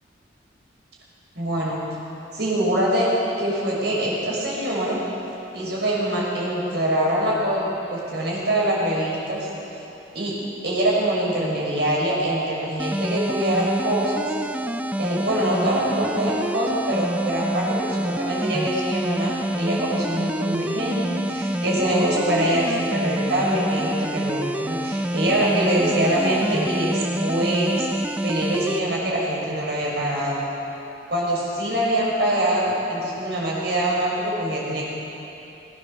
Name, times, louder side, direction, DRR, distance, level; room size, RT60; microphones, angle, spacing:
voice 1, 1.3-1.8 2.3-3.1 3.4-5.0 5.5-9.5 10.1-10.3 10.6-14.3 15.0-27.9 28.2-30.4 31.1-34.9, right 1 dB, 60° right, -5 dB, 6.3 m, -24 dB
sound 1, 12.8-28.8, right 1 dB, 5° right, 0.5 m, -27 dB
21.5 x 17.5 x 7.0 m, 3.0 s
head